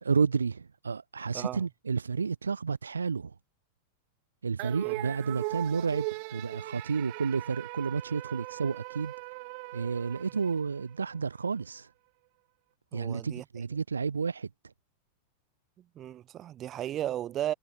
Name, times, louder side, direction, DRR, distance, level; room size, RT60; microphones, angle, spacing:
voice 1, 0.0-3.3 4.4-9.1 9.7-11.9 12.9-14.7, right 5 dB, 75° right, 0.3 m, -31 dB
sound 1, 4.6-11.1, right 32 dB, 45° right, 1.1 m, -39 dB
voice 2, 12.9-13.4 16.0-17.5, right 12 dB, 30° right, 0.7 m, -35 dB
figure-of-eight pair, 90°, 0 cm